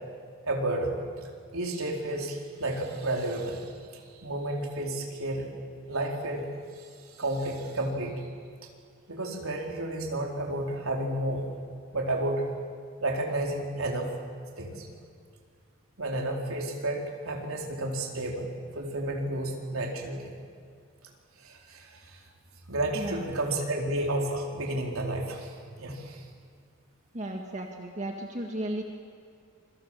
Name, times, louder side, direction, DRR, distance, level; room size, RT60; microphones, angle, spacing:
voice 1, 0.4-1.0 1.5-3.7 4.2-5.5 5.9-6.5 6.8-6.9 7.2-8.1 9.1-11.5 11.9-12.4 13.0-14.2 14.6-14.9 16.0-20.3 21.4-22.2 22.7-26.2, right 1 dB, 75° right, 0 dB, 4.4 m, -31 dB
voice 2, 27.1-28.8, right 1 dB, 35° right, 2 dB, 1.9 m, -34 dB
27.5 x 24.0 x 7.6 m, 2.2 s
head